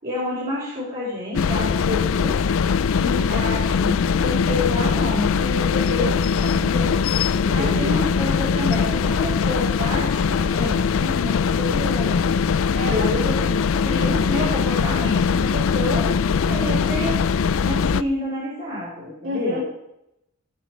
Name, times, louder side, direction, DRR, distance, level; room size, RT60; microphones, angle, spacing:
voice 1, 0.0-2.4 2.9-7.0 7.5-12.2 12.9-13.5 13.7-16.1 16.5-17.2 17.6-19.6, left 1 dB, 40° right, -9 dB, 4.2 m, -29 dB
sound 1, 1.3-18.0, left 6 dB, 65° left, 0.4 m, -21 dB
voice 2, 7.4-8.0 12.7-13.5 19.2-19.6, equal, 65° right, -1 dB, 3.8 m, -30 dB
18.0 x 6.3 x 4.5 m, 0.85 s
head